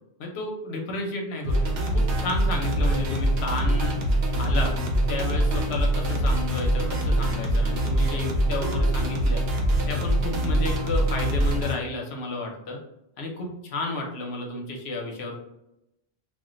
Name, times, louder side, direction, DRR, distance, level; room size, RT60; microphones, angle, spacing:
voice 1, 0.2-4.0 4.4-4.8 5.1-9.4 9.9-12.8 13.2-15.4, left 2 dB, 80° left, 1 dB, 0.9 m, -32 dB
sound 1, 1.4-11.7, right 1 dB, 70° right, 0.9 m, -24 dB
2.4 x 2.1 x 3.7 m, 0.85 s
omnidirectional pair, 1.1 m